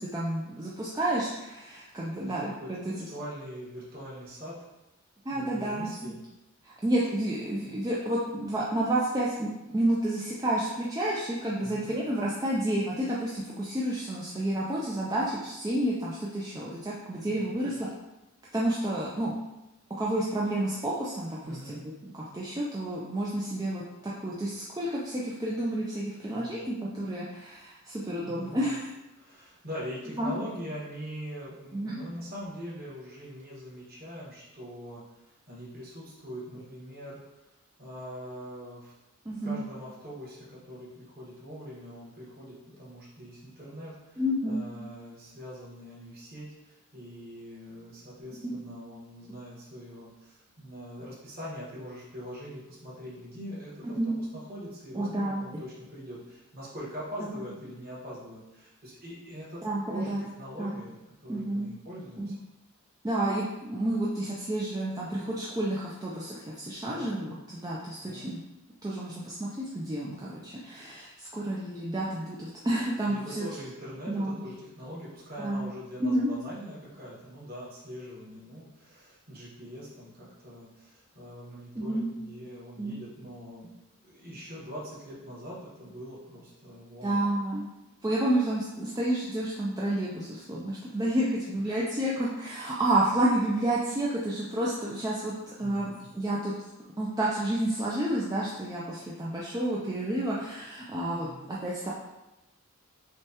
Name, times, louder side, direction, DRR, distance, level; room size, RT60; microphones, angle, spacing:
voice 1, 0.0-2.8 5.3-6.1 6.6-17.9 18.5-19.3 20.0-28.9 30.2-30.3 31.7-32.0 39.3-39.6 44.2-44.6 48.4-48.5 54.0-54.1 54.9-55.5 57.2-57.3 59.6-60.2 60.6-60.8 61.3-61.7 62.2-62.3 63.0-68.4 68.8-73.4 74.1-74.4 75.4-75.7 76.0-76.3 81.8-82.1 82.8-83.0 87.0-87.7 88.0-95.3 95.6-96.5 97.0-101.9, right 1 dB, 15° right, -5 dB, 0.4 m, -30 dB
voice 2, 2.2-4.6 5.3-6.2 11.6-11.9 17.2-17.8 21.4-21.8 26.3-26.6 28.2-28.8 29.1-37.2 37.8-38.9 39.4-59.6 59.9-62.4 66.8-67.1 68.0-68.4 73.0-83.7 84.0-87.2 91.5-91.6 95.6-96.1 101.2-101.5, equal, 40° right, -7 dB, 1.4 m, -43 dB
6.1 x 2.3 x 2.9 m, 0.98 s
head